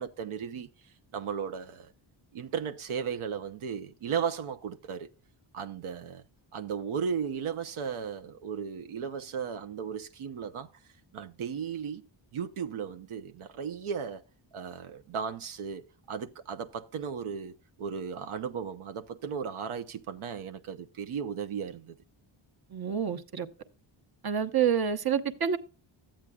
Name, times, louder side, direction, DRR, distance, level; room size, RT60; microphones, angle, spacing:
voice 1, 0.0-1.9 2.3-5.1 5.5-6.2 6.5-10.7 11.1-12.1 12.3-14.2 14.5-21.9, right 7 dB, 80° right, 0.8 m, -35 dB
voice 2, 22.7-23.5 24.2-25.6, right 8 dB, 50° right, 1.0 m, -28 dB
13.5 x 8.8 x 2.3 m
wide cardioid pair, 135°, 49 cm